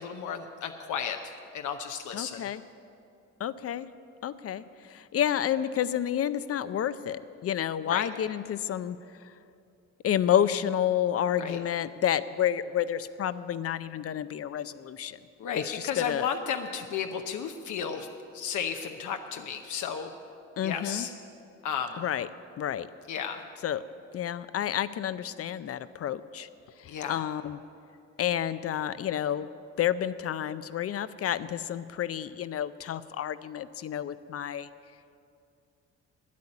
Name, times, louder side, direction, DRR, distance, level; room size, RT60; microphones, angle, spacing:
voice 1, 0.0-2.4 7.8-8.1 11.4-11.6 15.4-18.1 18.3-20.1 20.6-21.1 21.6-22.0 23.1-23.4 26.9-27.2, left 7 dB, 75° left, 5 dB, 0.8 m, -33 dB
voice 2, 2.1-2.6 3.4-3.9 4.2-9.0 9.2-9.3 10.0-15.2 15.6-16.3 20.6-21.1 22.0-22.3 22.6-22.9 23.6-23.8 24.1-26.5 26.8-27.6 28.2-29.5 29.8-34.7, left 10 dB, 50° left, 14 dB, 0.5 m, -30 dB
9.9 x 8.4 x 9.7 m, 2.5 s
cardioid pair, 90°, 30 cm